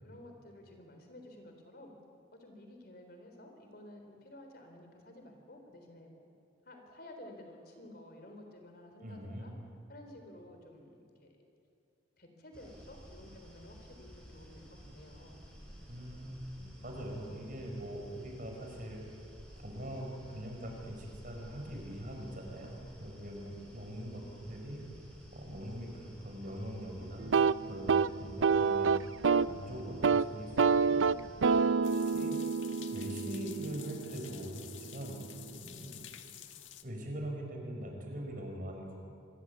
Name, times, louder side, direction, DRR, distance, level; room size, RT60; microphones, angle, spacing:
voice 1, 0.0-2.0 2.3-6.2 6.7-9.5 9.9-11.5 12.2-15.4 16.6-16.8 23.5-23.9, left 1 dB, 50° left, 4 dB, 4.0 m, -53 dB
voice 2, 9.0-9.5 15.9-16.4 16.8-19.0 19.6-24.8 25.3-27.3 27.7-29.0 29.4-31.3 32.1-32.4 32.9-35.2 35.5-36.1 36.8-39.0, equal, 45° right, 1 dB, 5.5 m, -42 dB
sound 1, 12.5-31.6, equal, 5° left, 6.1 m, -54 dB
sound 2, 27.2-29.6 29.9-30.3 30.6-34.4, right 5 dB, 85° right, 0.5 m, -28 dB
sound 3, 31.8-36.8, left 11 dB, 80° left, 1.7 m, -50 dB
26.5 x 22.0 x 8.3 m, 2.5 s
head